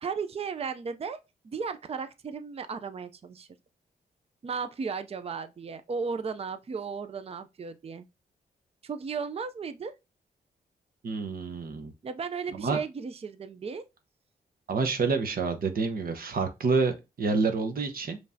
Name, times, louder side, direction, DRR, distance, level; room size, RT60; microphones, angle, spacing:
voice 1, 0.0-1.2 1.4-3.5 4.4-8.1 8.8-9.9 12.0-13.9, right 5 dB, 40° right, 0.5 m, -35 dB
voice 2, 11.0-11.9 12.5-12.8 14.7-18.2, right 4 dB, 65° right, 1.0 m, -28 dB
5.2 x 3.2 x 2.7 m
cardioid pair, 70°, 16 cm